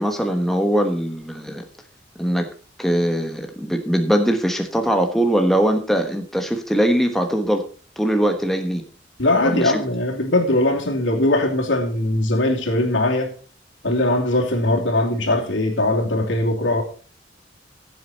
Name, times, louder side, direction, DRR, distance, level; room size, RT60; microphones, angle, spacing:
voice 1, 0.0-1.6 2.2-2.5 2.8-7.6 8.0-8.8 9.4-9.8, equal, ahead, 4 dB, 1.1 m, -21 dB
voice 2, 9.2-13.3 13.8-16.8, left 1 dB, 85° left, 1 dB, 2.7 m, -20 dB
15.5 x 7.8 x 4.2 m, 0.39 s
head